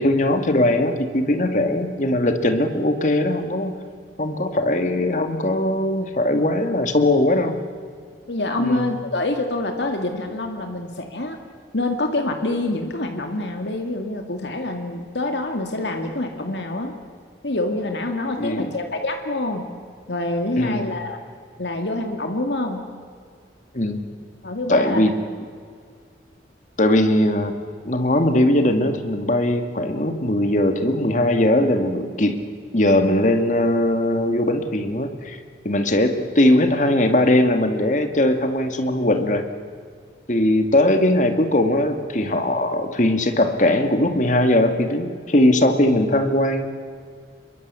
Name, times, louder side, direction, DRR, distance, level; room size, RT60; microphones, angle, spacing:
voice 1, 0.0-3.7 4.2-7.6 8.6-8.9 18.4-18.7 20.6-20.9 23.7-24.2 24.7-25.2 26.8-27.5 27.8-32.4 32.7-35.4 35.6-39.4 40.3-46.7, left 1 dB, 45° left, 7 dB, 2.1 m, -20 dB
voice 2, 8.3-11.4 11.7-16.9 17.4-19.7 20.1-21.2 21.6-22.9 24.4-25.0, left 2 dB, 85° left, 4 dB, 2.3 m, -26 dB
27.0 x 22.5 x 8.4 m, 2.1 s
head